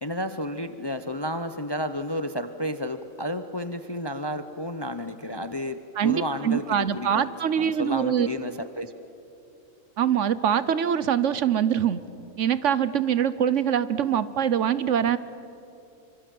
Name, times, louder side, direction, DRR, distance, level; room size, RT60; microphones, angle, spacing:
voice 1, 0.0-7.3 7.6-9.1, left 1 dB, 25° left, 10 dB, 0.6 m, -32 dB
voice 2, 6.0-8.3 10.0-12.0 12.4-15.2, right 9 dB, 65° right, 15 dB, 1.0 m, -24 dB
25.5 x 25.0 x 7.7 m, 2.7 s
omnidirectional pair, 1.5 m